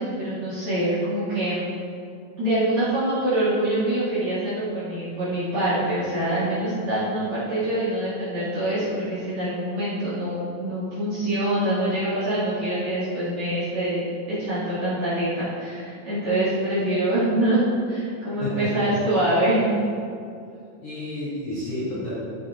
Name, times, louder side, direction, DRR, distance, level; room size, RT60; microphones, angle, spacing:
voice 1, 0.0-1.6 2.4-14.0 14.3-19.7, right 1 dB, 40° right, -12 dB, 3.3 m, -25 dB
voice 2, 18.4-18.7 20.8-22.1, left 1 dB, 35° left, -10 dB, 3.1 m, -30 dB
13.5 x 7.6 x 3.8 m, 2.4 s
omnidirectional pair, 5.3 m